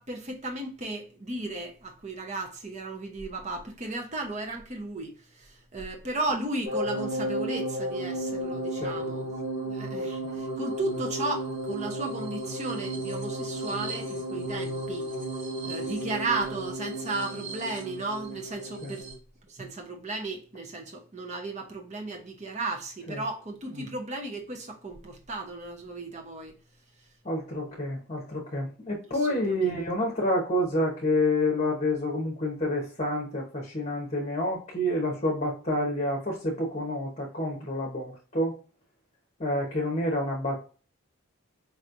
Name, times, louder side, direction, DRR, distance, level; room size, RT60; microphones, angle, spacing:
voice 1, 0.0-9.3 9.6-15.1 15.6-19.1 19.5-26.6 29.1-29.8, right 2 dB, 30° right, 0.8 m, -35 dB
sound 1, 6.6-19.2, right 1 dB, 60° right, 2.2 m, -33 dB
voice 2, 27.2-38.6 39.4-40.6, left 1 dB, 30° left, 1.0 m, -28 dB
4.7 x 3.1 x 2.5 m
head